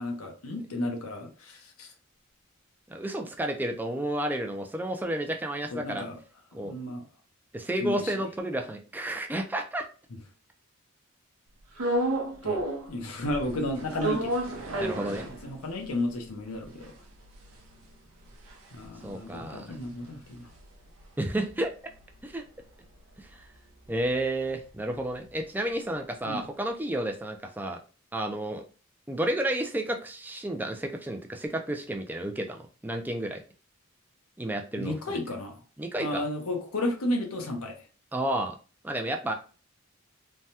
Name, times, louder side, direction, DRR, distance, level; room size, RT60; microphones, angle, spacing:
voice 1, 0.0-1.9 5.7-6.2 6.5-7.0 7.8-8.1 12.4-12.6 12.9-14.4 15.3-16.9 18.7-20.5 26.2-26.5 34.8-35.6 36.0-37.8, left 1 dB, 85° left, 4 dB, 0.8 m, -33 dB
voice 2, 2.9-6.1 6.5-6.7 7.5-9.8 14.8-15.3 19.0-19.7 21.2-21.7 22.2-22.4 23.2-23.5 23.9-27.8 28.1-28.6 29.1-33.4 34.4-35.2 35.8-36.2 38.1-38.6 38.8-39.3, right 1 dB, 10° right, 3 dB, 0.3 m, -31 dB
sound 1, 11.8-13.0 13.3-15.9 16.2-16.3 16.5-21.0 21.4-25.4, right 1 dB, 85° right, 0.6 m, -33 dB
3.3 x 2.2 x 2.7 m, 0.36 s
head